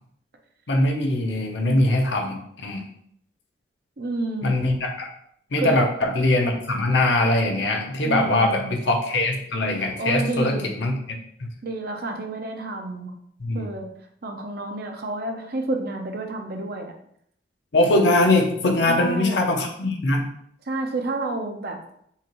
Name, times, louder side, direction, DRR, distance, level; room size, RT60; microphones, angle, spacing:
voice 1, 0.7-2.8 4.4-5.1 5.5-11.0 13.4-13.7 17.7-20.3, left 2 dB, 70° left, 2 dB, 0.8 m, -22 dB
voice 2, 4.0-4.6 5.6-5.8 8.0-8.7 10.0-10.7 11.6-13.1 13.5-13.9 14.2-16.9 18.9-19.4 20.7-21.8, right 2 dB, 55° right, 3 dB, 0.7 m, -29 dB
5.7 x 2.5 x 3.0 m, 0.69 s
head